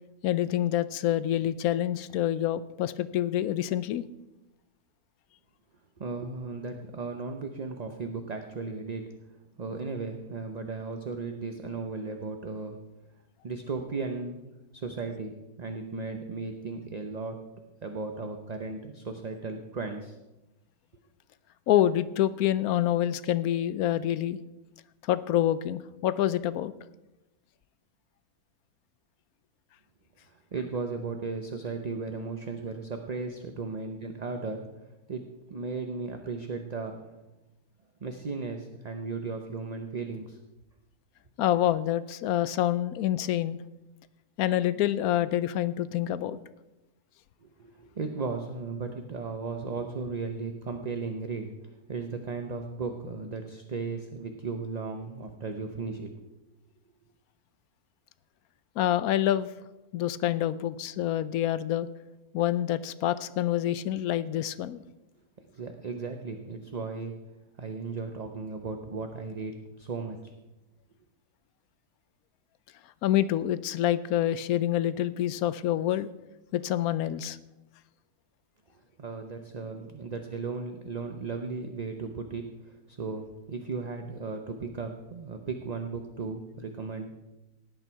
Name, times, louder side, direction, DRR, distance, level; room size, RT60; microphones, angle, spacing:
voice 1, 0.2-4.0 21.7-24.4 25.1-26.7 41.4-43.6 44.4-46.4 58.8-59.5 59.9-61.9 62.3-64.8 73.0-76.1 76.5-77.4, left 12 dB, 75° left, 15 dB, 1.0 m, -27 dB
voice 2, 6.0-9.1 9.6-12.8 13.4-14.5 14.7-17.4 17.8-20.2 30.2-34.7 35.1-37.2 38.0-40.4 47.4-56.2 65.4-67.1 67.6-70.3 79.0-87.2, right 4 dB, 35° right, 5 dB, 0.7 m, -36 dB
17.0 x 9.1 x 4.6 m, 1.0 s
omnidirectional pair, 1.6 m